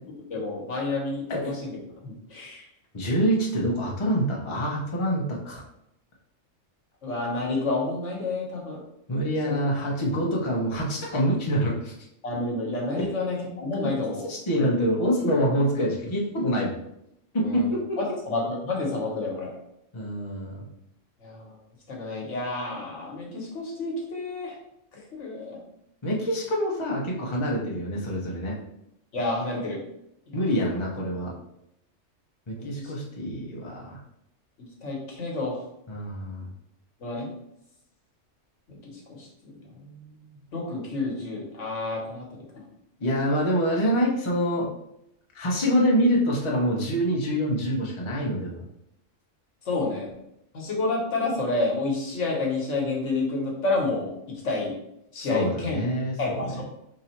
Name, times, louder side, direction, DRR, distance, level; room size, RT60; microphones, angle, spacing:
voice 1, 0.3-1.8 2.0-2.7 7.0-8.8 9.4-9.6 12.2-14.2 14.5-14.7 17.4-17.7 18.0-19.5 21.2-21.5 21.9-24.6 24.9-25.6 29.1-29.8 30.3-30.4 32.6-32.9 34.6-35.6 37.0-37.3 38.7-42.3 49.6-50.1 50.5-54.1 54.4-54.7 55.1-55.8 56.2-56.6, left 2 dB, 70° left, -2 dB, 1.4 m, -30 dB
voice 2, 2.9-5.6 9.1-11.9 14.3-16.7 17.5-17.8 19.9-20.6 26.0-28.5 30.3-31.3 32.5-34.0 35.9-36.5 43.0-44.7 45.3-48.6 55.3-56.6, equal, 25° left, -3 dB, 0.8 m, -26 dB
3.8 x 2.7 x 4.4 m, 0.79 s
omnidirectional pair, 1.3 m